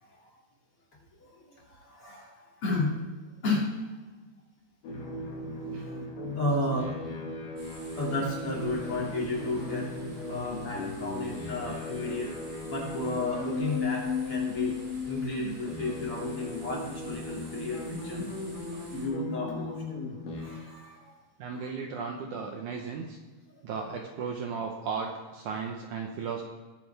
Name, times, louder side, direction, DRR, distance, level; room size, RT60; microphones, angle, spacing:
voice 1, 1.2-3.0 3.4-3.9 5.7-6.0 6.3-6.9 7.9-12.3 12.6-14.8 15.0-18.3 18.7-19.8 20.3-21.1 23.5-23.6, left 2 dB, 40° left, -4 dB, 3.3 m, -33 dB
sound 1, 4.8-20.4, left 3 dB, 65° left, 3.4 m, -36 dB
sound 2, 7.6-19.1, right 2 dB, 85° right, 6.6 m, -50 dB
voice 2, 21.4-23.2 23.6-26.4, right 5 dB, 70° right, 2 dB, 2.0 m, -35 dB
21.5 x 8.3 x 3.4 m, 1.3 s
omnidirectional pair, 4.4 m